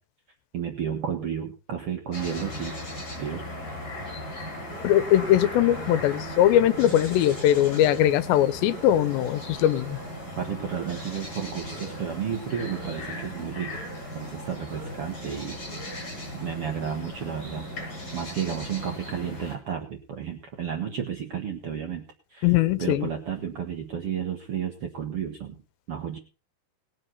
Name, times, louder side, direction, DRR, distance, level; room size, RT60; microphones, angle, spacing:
voice 1, 0.5-2.8 3.2-3.4 10.4-13.8 14.1-16.1 16.3-17.6 18.1-22.0 22.3-22.5 22.8-25.6 25.9-26.2, right 8 dB, 75° right, 4 dB, 1.3 m, -32 dB
sound 1, 2.1-19.6, left 1 dB, 25° left, 7.4 m, -37 dB
sound 2, 3.0-18.2, right 2 dB, 30° right, 5.1 m, -49 dB
voice 2, 4.8-10.0 22.4-23.1, left 12 dB, 90° left, 15 dB, 3.0 m, -21 dB
19.5 x 7.5 x 5.7 m, 0.36 s
omnidirectional pair, 4.9 m